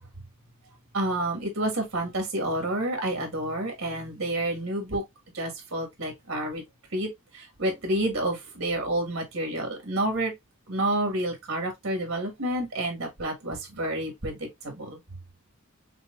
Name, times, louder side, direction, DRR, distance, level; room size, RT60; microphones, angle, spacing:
voice 1, 0.9-5.0 5.3-6.6 6.9-7.1 7.3-10.3 10.7-14.4 14.6-15.0, right 1 dB, 90° right, 1.6 m, -29 dB
5.8 x 2.2 x 2.4 m
head